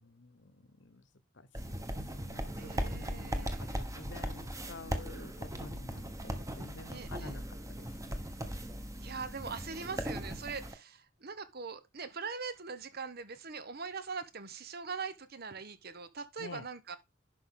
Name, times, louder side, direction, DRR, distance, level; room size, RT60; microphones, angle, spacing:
voice 1, 0.0-1.0 1.3-8.3 16.4-16.7, left 3 dB, 70° left, 1.1 m, -51 dB
sound 1, 1.5-10.7, equal, 15° right, 1.3 m, -38 dB
voice 2, 2.6-3.7 6.9-7.4 9.0-17.0, right 5 dB, 55° right, 1.1 m, -42 dB
11.0 x 5.3 x 3.9 m
head